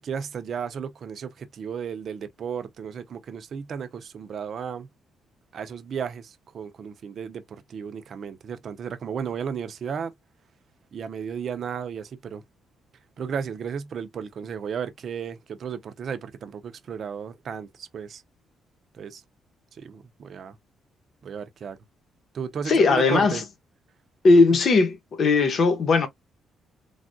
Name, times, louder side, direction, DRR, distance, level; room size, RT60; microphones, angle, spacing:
voice 1, 0.0-4.9 5.5-10.1 10.9-12.4 13.2-18.2 18.9-19.2 19.7-20.6 21.2-21.8 22.3-23.4, right 7 dB, 55° right, 0.5 m, -34 dB
voice 2, 22.7-23.4 24.2-26.1, left 3 dB, 55° left, 0.9 m, -18 dB
3.4 x 2.3 x 2.5 m
cardioid pair, 90°, 0 cm